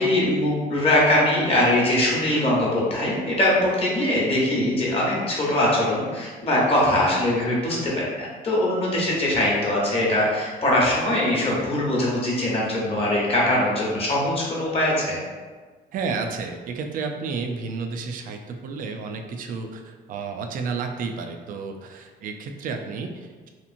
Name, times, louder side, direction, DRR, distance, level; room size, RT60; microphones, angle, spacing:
voice 1, 0.0-15.2, left 1 dB, 35° left, -5 dB, 0.9 m, -22 dB
voice 2, 15.9-23.5, right 4 dB, 55° right, 5 dB, 0.4 m, -31 dB
2.9 x 2.5 x 2.5 m, 1.4 s
cardioid pair, 110°, 17 cm